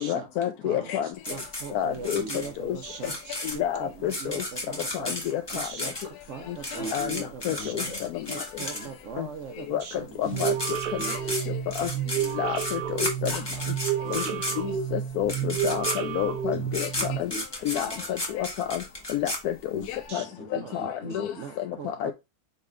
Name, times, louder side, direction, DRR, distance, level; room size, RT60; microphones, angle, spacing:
voice 1, 0.0-1.1 1.7-2.2 2.6-2.8 3.6-4.4 4.9-5.7 6.5-6.6 6.9-7.8 9.2-9.3 9.7-9.8 10.2-10.5 11.1-11.2 11.8-11.9 12.3-13.4 14.1-14.2 14.6-16.9 17.2-17.3 17.6-18.8 19.1-20.2 20.7-21.3 22.0-22.1, left 11 dB, 75° left, 1.0 m, -29 dB
voice 2, 0.6-5.2 5.5-6.0 6.3-7.9 8.3-10.6 20.1-20.3 20.6-20.8 21.4-22.1, right 6 dB, 55° right, 1.0 m, -40 dB
sound 1, 1.2-9.2 10.0-10.1 10.3-20.0, left 1 dB, 20° left, 1.1 m, -34 dB
voice 3, 2.1-2.5 6.8-7.1 7.4-8.3 10.2-10.4 11.0-11.4 14.0-14.6 16.5-16.7 17.0-17.4 17.8-18.1 19.7-21.3, left 1 dB, 50° left, 1.5 m, -40 dB
sound 2, 10.3-17.2, right 9 dB, 75° right, 1.2 m, -30 dB
5.3 x 4.1 x 2.4 m
omnidirectional pair, 1.6 m